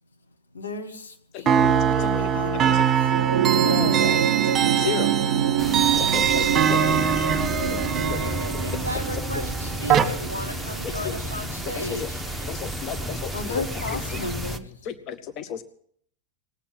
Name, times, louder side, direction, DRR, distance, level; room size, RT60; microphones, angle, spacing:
voice 1, 0.5-3.1 7.5-8.2 13.3-14.9, left 3 dB, 70° left, 4 dB, 1.8 m, -34 dB
sound 1, 1.5-10.0, right 8 dB, 20° right, 1.6 m, -23 dB
sound 2, 3.0-11.7 12.9-13.0, right 9 dB, 65° right, 0.5 m, -26 dB
voice 2, 3.6-4.2 4.4-5.1 5.9-6.8 8.1-8.2 11.0-11.1 11.8-12.1 12.5-13.3 14.9-15.6, left 9 dB, 40° left, 11 dB, 0.9 m, -33 dB
sound 3, 5.6-14.6, equal, ahead, 1.0 m, -32 dB
voice 3, 7.9-12.2, left 1 dB, 90° left, 7 dB, 0.7 m, -35 dB
19.0 x 8.4 x 7.4 m, 0.64 s
figure-of-eight pair, 90°, 0 cm